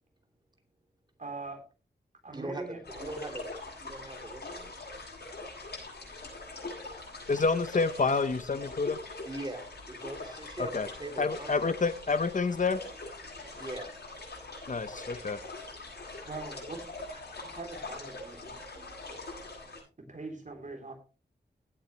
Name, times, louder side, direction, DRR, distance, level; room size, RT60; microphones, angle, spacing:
voice 1, 1.2-1.6 2.2-3.2 16.2-16.8 17.1-18.6 20.0-20.9, right 3 dB, 45° right, 4 dB, 3.5 m, -42 dB
voice 2, 2.3-2.7 3.0-3.5 3.8-4.8 9.2-12.0 13.6-13.9, right 1 dB, 25° right, 4 dB, 2.9 m, -41 dB
sound 1, 2.8-19.8, left 2 dB, 65° left, 7.9 m, -43 dB
voice 3, 7.3-9.0 10.6-10.9 11.2-12.8 14.7-15.4, left 4 dB, 45° left, 13 dB, 0.7 m, -28 dB
17.5 x 8.8 x 3.2 m, 0.32 s
wide cardioid pair, 120°, 18 cm